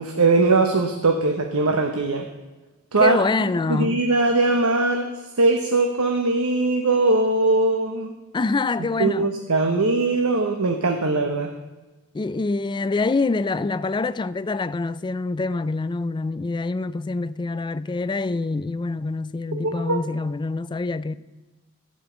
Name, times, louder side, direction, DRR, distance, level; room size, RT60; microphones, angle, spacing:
voice 1, 0.0-2.3 2.9-3.2 3.7-5.1 5.4-8.1 9.0-11.5 19.5-20.0, right 3 dB, 80° right, 1.0 m, -20 dB
voice 2, 3.0-4.1 8.3-9.3 12.1-21.1, left 3 dB, 20° left, 0.3 m, -25 dB
15.0 x 5.3 x 7.9 m
head